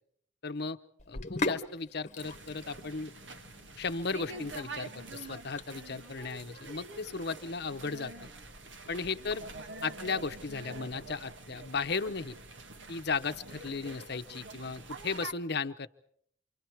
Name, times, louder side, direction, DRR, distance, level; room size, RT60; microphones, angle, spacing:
voice 1, 0.4-0.8 1.1-3.1 3.8-8.3 8.9-9.5 9.8-12.4 12.9-15.9, left 4 dB, 60° left, 10 dB, 0.9 m, -35 dB
Sink (filling or washing), 1.0-11.8, left 3 dB, 40° left, 1.2 m, -43 dB
sound 1, 2.2-15.3, right 3 dB, 75° right, 1.6 m, -46 dB
29.0 x 26.0 x 4.6 m, 0.64 s
head